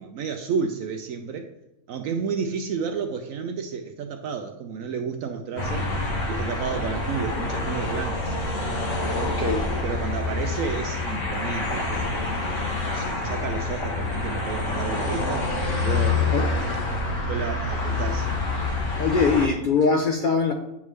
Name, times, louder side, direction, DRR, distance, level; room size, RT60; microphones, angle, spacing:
voice 1, 0.0-1.5 1.9-5.9 6.3-8.4 9.0-12.6 12.9-16.3 17.3-18.3, right 6 dB, 70° right, 5 dB, 0.9 m, -31 dB
sound 1, 5.6-19.5, left 2 dB, 55° left, 1.3 m, -27 dB
voice 2, 9.1-9.7 16.3-16.5 19.0-20.5, left 5 dB, 80° left, 2 dB, 0.4 m, -22 dB
9.3 x 3.5 x 3.2 m, 0.92 s
omnidirectional pair, 1.6 m